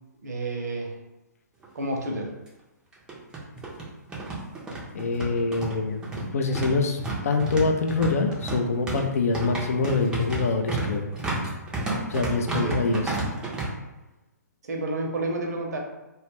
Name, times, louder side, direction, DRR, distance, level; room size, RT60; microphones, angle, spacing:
voice 1, 0.2-0.9 1.7-2.3 12.6-12.8 14.6-15.8, right 2 dB, 65° right, 1 dB, 0.6 m, -30 dB
sound 1, 1.6-1.7 2.0-2.1 2.9-13.7, right 2 dB, 10° right, 0.4 m, -31 dB
voice 2, 4.9-7.0 7.2-11.1 12.1-13.2, left 3 dB, 55° left, 4 dB, 0.4 m, -25 dB
2.2 x 2.1 x 3.3 m, 1.0 s
figure-of-eight pair, 125°, 10 cm